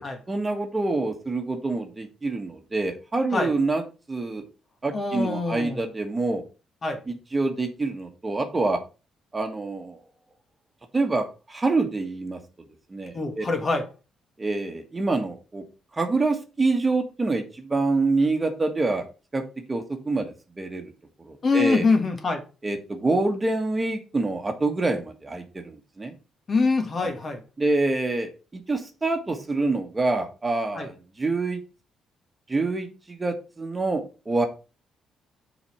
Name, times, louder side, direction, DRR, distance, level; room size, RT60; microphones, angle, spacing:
voice 1, 0.3-3.8 4.1-4.4 4.8-6.4 7.1-8.8 9.3-10.0 10.9-12.4 12.9-13.5 14.4-15.6 15.9-19.0 19.3-19.4 19.7-20.9 21.2-21.8 22.6-26.1 27.0-27.1 27.6-31.6 32.5-34.5, right 3 dB, 20° right, 1.5 m, -26 dB
voice 2, 4.9-5.8 6.8-7.0 13.1-13.9 21.4-22.4 26.5-27.4 30.7-30.9, left 4 dB, 40° left, 1.7 m, -24 dB
6.9 x 4.2 x 5.7 m
cardioid pair, 90°, 0 cm